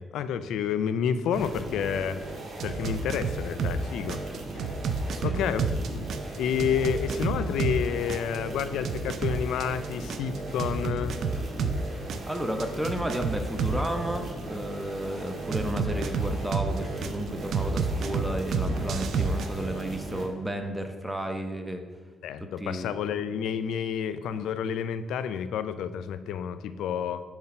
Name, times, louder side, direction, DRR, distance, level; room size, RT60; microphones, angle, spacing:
voice 1, 0.0-2.2 2.6-4.2 5.2-6.1 6.4-11.2 22.2-27.2, left 8 dB, 80° left, 12 dB, 0.3 m, -29 dB
sound 1, 1.3-20.3, right 2 dB, 45° right, 1.6 m, -38 dB
sound 2, 2.6-3.8 4.1-7.8 8.1-11.8 12.1-13.9 15.5-17.1 17.5-19.5, right 5 dB, 65° right, 0.4 m, -29 dB
voice 2, 5.1-5.4 12.3-21.8 22.6-22.9, right 1 dB, 10° right, 5 dB, 0.6 m, -32 dB
5.6 x 4.6 x 4.3 m, 1.4 s
cardioid pair, 90°, 0 cm